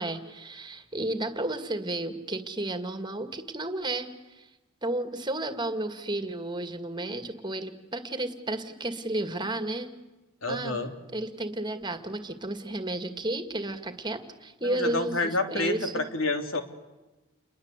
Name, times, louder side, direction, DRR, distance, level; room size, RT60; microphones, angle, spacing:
voice 1, 0.0-4.5 4.8-9.9 10.5-10.8 11.1-16.0, right 1 dB, 20° right, 9 dB, 2.1 m, -32 dB
voice 2, 10.4-10.9 14.6-16.6, left 2 dB, 70° left, 6 dB, 3.2 m, -29 dB
29.5 x 22.0 x 8.3 m, 1.1 s
head